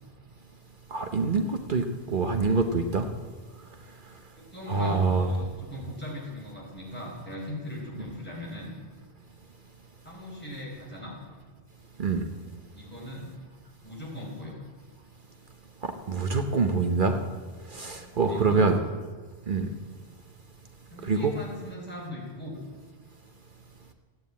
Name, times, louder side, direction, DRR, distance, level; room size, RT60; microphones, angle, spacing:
voice 1, 0.9-3.1 4.7-5.3 12.0-12.2 15.8-17.2 17.7-18.8 19.5-19.7 21.0-21.3, right 4 dB, 55° right, 5 dB, 1.0 m, -25 dB
voice 2, 4.5-8.7 10.0-11.1 12.7-13.3 13.8-14.6 17.8-17.9 18.2-18.7 20.9-22.6, left 1 dB, 10° left, -4 dB, 4.6 m, -39 dB
14.0 x 9.3 x 8.5 m, 1.5 s
omnidirectional pair, 1.0 m